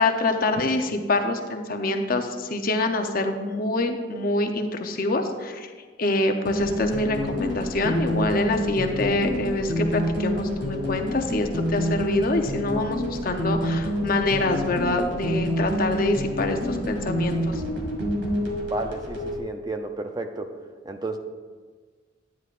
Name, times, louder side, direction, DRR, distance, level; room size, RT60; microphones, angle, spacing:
voice 1, 0.0-5.7 6.0-17.6, left 2 dB, 50° left, 5 dB, 0.7 m, -25 dB
sound 1, 6.5-19.4, equal, 65° right, 1.9 m, -27 dB
voice 2, 18.7-20.5 20.9-21.2, right 2 dB, 20° right, 6 dB, 0.5 m, -32 dB
10.0 x 9.5 x 2.5 m, 1.5 s
head